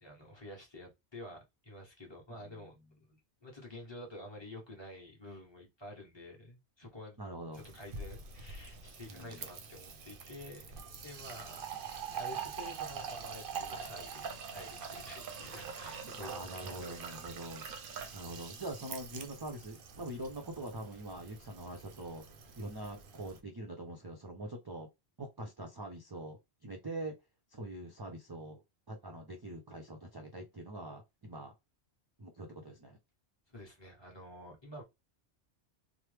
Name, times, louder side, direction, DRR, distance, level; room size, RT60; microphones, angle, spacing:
voice 1, 0.0-7.2 7.5-10.6 11.0-11.6 12.1-14.2 14.5-17.2 17.6-18.0 33.5-34.8, left 1 dB, 25° left, 1.1 m, -50 dB
voice 2, 2.3-2.6 7.2-7.6 9.1-9.4 16.2-17.6 18.1-24.9 25.2-27.1 27.5-28.6 28.9-31.5 32.2-33.0, right 1 dB, 35° right, 0.4 m, -44 dB
Fill (with liquid), 7.5-23.4, right 6 dB, 60° right, 0.7 m, -44 dB
3.1 x 2.0 x 3.2 m
omnidirectional pair, 1.1 m